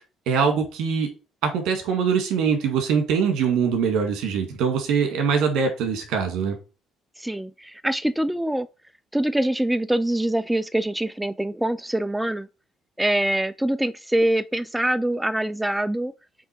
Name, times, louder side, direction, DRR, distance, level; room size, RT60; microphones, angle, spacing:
voice 1, 0.3-1.1 1.4-6.5, right 6 dB, 75° right, 2.1 m, -23 dB
voice 2, 7.2-8.7 9.1-12.5 13.0-16.1, right 1 dB, 5° right, 0.4 m, -24 dB
7.8 x 3.4 x 4.5 m
supercardioid pair, 75°, 0 cm